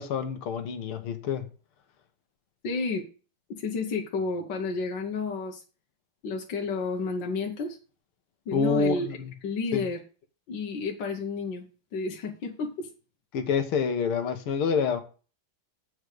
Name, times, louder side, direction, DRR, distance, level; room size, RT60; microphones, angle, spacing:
voice 1, 0.0-1.5 8.5-9.3 9.7-9.9 13.3-15.0, left 5 dB, 85° left, 2.1 m, -27 dB
voice 2, 2.6-3.0 3.5-5.6 6.2-7.8 8.5-9.1 9.4-10.0 10.5-11.6 11.9-12.9, left 4 dB, 60° left, 1.7 m, -31 dB
8.1 x 5.0 x 6.5 m
omnidirectional pair, 2.3 m